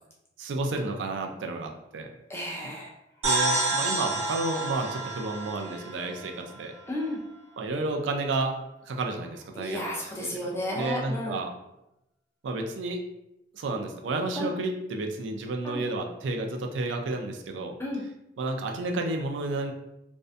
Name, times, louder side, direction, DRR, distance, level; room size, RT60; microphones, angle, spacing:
voice 1, 0.4-2.1 2.6-2.7 3.2-6.7 7.6-8.5 8.9-9.8 10.2-10.5 10.7-11.5 12.4-13.0 13.5-17.7 18.4-19.7, right 2 dB, 85° right, 3 dB, 0.4 m, -31 dB
voice 2, 2.3-2.9 6.9-7.2 9.6-11.4 14.4-14.5 15.6-15.8 17.8-18.0, left 1 dB, 15° left, -3 dB, 0.4 m, -32 dB
sound 1, 3.2-6.9, right 2 dB, 35° right, 0.8 m, -29 dB
2.6 x 2.1 x 2.5 m, 0.88 s
head